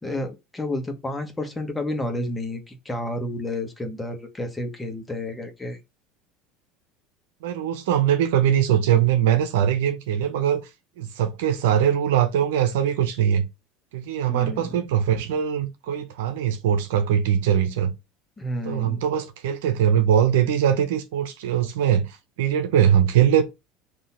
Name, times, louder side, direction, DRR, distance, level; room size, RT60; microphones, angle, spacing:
voice 1, 0.0-5.8 14.3-14.7 18.4-19.0, left 1 dB, 15° left, 1.3 m, -30 dB
voice 2, 7.4-10.7 11.0-13.5 13.9-17.9 18.6-23.4, right 9 dB, 85° right, 0.9 m, -21 dB
3.9 x 2.9 x 4.4 m
supercardioid pair, 105°, 0 cm